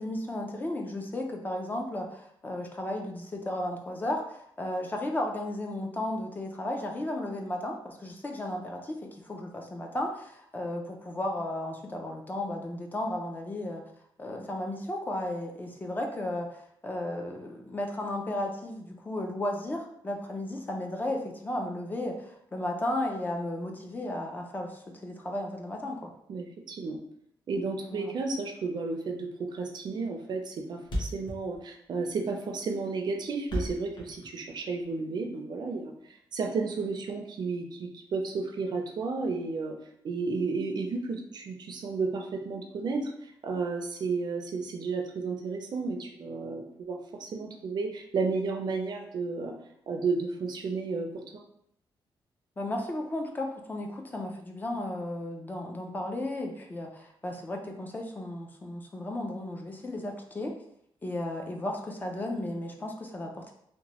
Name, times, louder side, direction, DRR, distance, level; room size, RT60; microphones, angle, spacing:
voice 1, 0.0-13.8 14.2-26.1 27.9-28.1 52.6-60.5 61.0-63.5, left 1 dB, 20° left, 2 dB, 0.3 m, -34 dB
voice 2, 26.3-27.0 27.5-39.8 40.0-49.5 49.9-51.4, right 4 dB, 55° right, 3 dB, 0.4 m, -32 dB
Thump thud, 29.5-29.7 30.0-30.1 30.3-30.4 30.6-30.7 30.8-34.9, equal, 65° left, 0.9 m, -35 dB
2.9 x 2.1 x 2.9 m, 0.71 s
wide cardioid pair, 160°, 9 cm